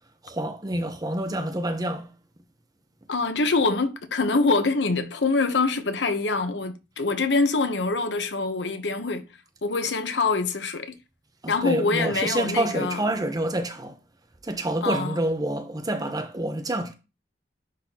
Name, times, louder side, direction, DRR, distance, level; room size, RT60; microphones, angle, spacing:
voice 1, 0.2-2.1 11.4-13.9 14.4-16.9, right 1 dB, 20° right, 0.8 m, -27 dB
voice 2, 3.1-9.2 9.6-10.9 11.5-13.0 14.8-15.2, left 3 dB, 75° left, 0.9 m, -25 dB
10.0 x 4.1 x 2.8 m
head